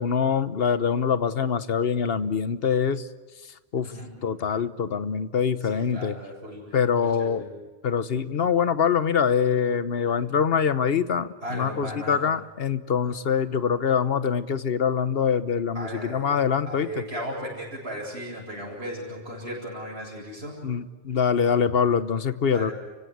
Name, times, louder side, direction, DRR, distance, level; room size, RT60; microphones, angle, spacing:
voice 1, 0.0-3.1 3.7-3.9 4.2-6.2 6.7-7.4 7.8-17.0 20.6-22.7, left 7 dB, 65° left, 13 dB, 1.2 m, -24 dB
voice 2, 5.6-6.8 7.2-7.5 11.4-12.2 13.0-13.2 15.7-16.4 16.7-20.6 22.5-22.7, equal, 85° right, -4 dB, 8.1 m, -36 dB
30.0 x 17.0 x 9.4 m, 1.3 s
omnidirectional pair, 1.1 m